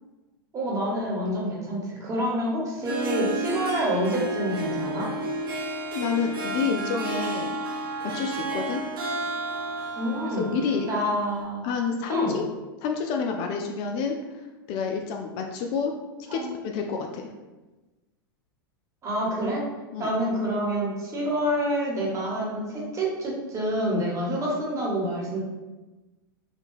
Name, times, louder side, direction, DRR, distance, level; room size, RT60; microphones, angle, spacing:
voice 1, 0.5-5.1 10.0-10.5 10.9-11.7 12.1-12.3 16.3-16.6 19.0-19.6 20.0-25.4, equal, 25° right, -4 dB, 1.1 m, -27 dB
Harp, 2.7-11.4, right 2 dB, 70° right, 0.7 m, -31 dB
voice 2, 5.9-7.6 8.0-8.8 10.4-10.9 11.6-12.4 12.8-14.2 14.7-16.0 16.3-17.3 19.9-20.1 24.3-24.4, left 5 dB, 45° left, 3 dB, 0.4 m, -28 dB
3.7 x 2.2 x 2.5 m, 1.1 s
hypercardioid pair, 100°, 12 cm